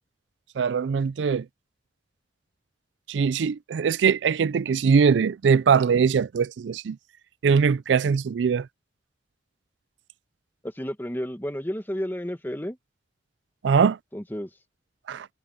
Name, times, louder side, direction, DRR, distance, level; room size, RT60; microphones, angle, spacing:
voice 1, 0.6-1.5 3.1-7.0 7.4-8.7 13.6-14.0 15.1-15.3, right 6 dB, 80° right, 0.4 m, -21 dB
voice 2, 10.6-12.8 14.1-14.5, equal, 10° left, 1.7 m, -31 dB
head